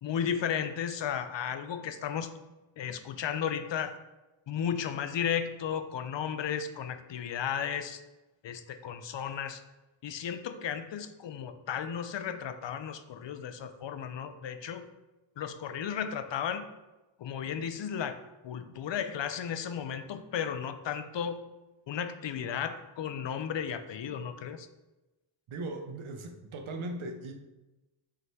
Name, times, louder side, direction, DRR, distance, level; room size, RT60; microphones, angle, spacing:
voice 1, 0.0-2.3 2.8-4.0 4.5-8.0 8.4-9.6 10.0-14.9 15.4-16.7 17.2-21.4 21.9-24.7, left 8 dB, 65° left, 9 dB, 0.6 m, -34 dB
voice 2, 25.5-27.3, right 2 dB, 75° right, 5 dB, 0.9 m, -38 dB
5.5 x 3.8 x 4.5 m, 1.1 s
wide cardioid pair, 130°, 49 cm